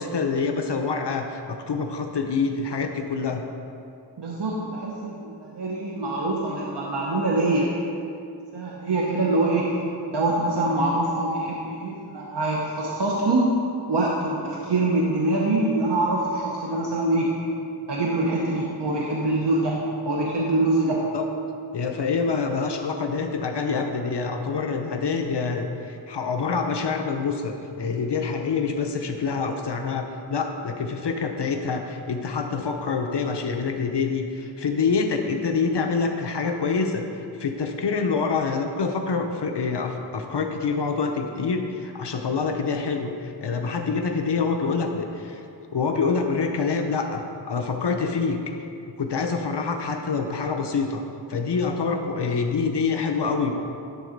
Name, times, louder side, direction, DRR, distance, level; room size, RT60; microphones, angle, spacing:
voice 1, 0.0-3.4 21.1-21.3 21.7-45.4 45.7-48.4 49.0-51.0 51.3-53.5, left 5 dB, 80° left, 4 dB, 0.8 m, -26 dB
voice 2, 4.2-7.7 8.5-9.7 10.1-13.6 13.9-17.3 17.9-19.8 20.0-21.0, right 2 dB, 80° right, -3 dB, 1.1 m, -24 dB
11.0 x 4.0 x 6.6 m, 2.6 s
wide cardioid pair, 65°, 41 cm